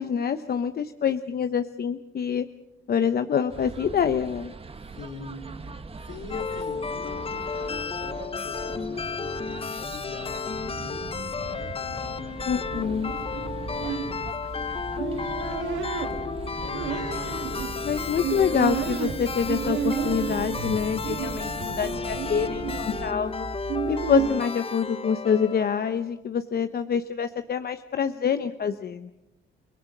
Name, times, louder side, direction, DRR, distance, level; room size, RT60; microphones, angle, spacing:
voice 1, 0.0-2.5 2.9-4.5 12.5-13.1 17.8-23.5 23.9-29.1, left 7 dB, 50° left, 10 dB, 1.0 m, -26 dB
sound 1, 3.5-23.1, right 4 dB, 30° right, 1.5 m, -40 dB
voice 2, 4.9-5.4 6.0-12.3 12.6-14.7 15.0-16.3 16.6-18.4, left 4 dB, 70° left, 4 dB, 4.9 m, -43 dB
sound 2, 6.3-26.2, left 5 dB, 30° left, 0.7 m, -33 dB
sound 3, 12.7-24.3, right 8 dB, 80° right, 2.2 m, -33 dB
30.0 x 18.5 x 6.2 m, 0.91 s
cardioid pair, 90°, 20 cm